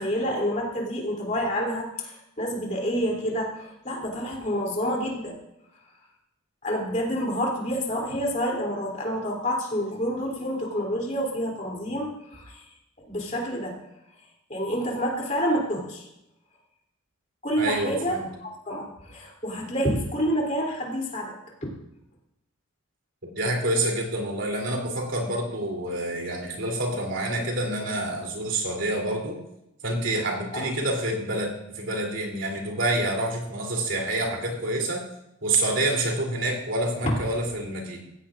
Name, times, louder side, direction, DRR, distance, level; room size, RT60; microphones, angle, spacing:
voice 1, 0.0-5.4 6.6-12.6 13.0-13.8 14.5-16.0 17.4-21.3 30.5-30.7, equal, 35° left, -1 dB, 3.1 m, -28 dB
voice 2, 17.6-18.3 19.5-19.6 23.4-29.4 29.8-35.0 35.4-38.0, right 1 dB, 60° right, 0 dB, 3.2 m, -27 dB
16.0 x 16.0 x 2.5 m, 0.85 s
head